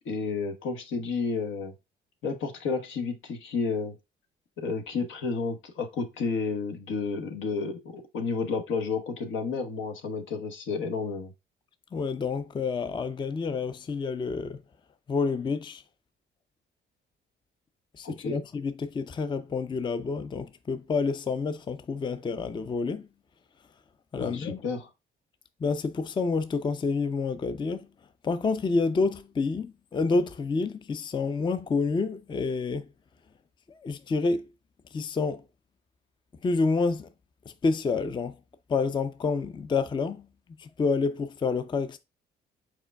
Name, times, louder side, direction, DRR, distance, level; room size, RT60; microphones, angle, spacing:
voice 1, 0.0-1.7 2.2-4.0 4.6-11.3 18.0-18.4 24.2-24.9, left 4 dB, 80° left, 1.1 m, -31 dB
voice 2, 11.9-14.6 15.1-15.8 18.0-23.1 24.1-24.6 25.6-27.9 28.2-32.9 33.7-34.4 34.9-35.4 36.4-37.1 37.5-38.4 38.7-40.2 40.6-42.0, left 4 dB, 25° left, 0.4 m, -28 dB
4.9 x 4.4 x 2.2 m
cardioid pair, 90°, 20 cm